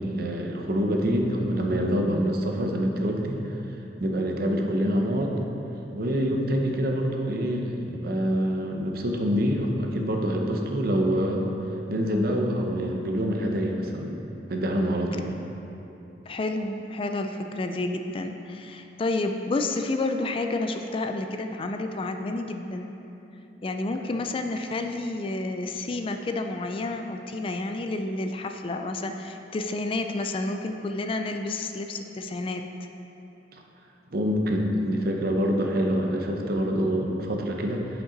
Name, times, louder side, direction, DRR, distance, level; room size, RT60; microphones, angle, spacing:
voice 1, 0.0-3.4 4.0-5.3 5.9-11.5 11.9-14.2 14.5-15.3 33.5-33.6 34.1-37.9, equal, 60° right, 2 dB, 0.7 m, -26 dB
voice 2, 16.3-23.0 23.6-32.7, left 2 dB, 30° left, 5 dB, 0.3 m, -30 dB
8.7 x 5.3 x 3.9 m, 2.9 s
head